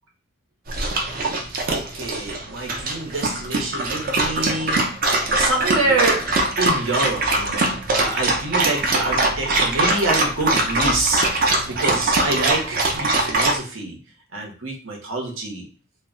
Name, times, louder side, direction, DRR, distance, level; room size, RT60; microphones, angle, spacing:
Dog, 0.7-13.6, right 2 dB, 45° right, 0.5 m, -22 dB
voice 1, 1.7-4.8 5.3-6.2 6.6-14.0 14.3-15.6, right 2 dB, 85° right, 1 dB, 0.8 m, -26 dB
2.2 x 2.1 x 3.6 m, 0.39 s
head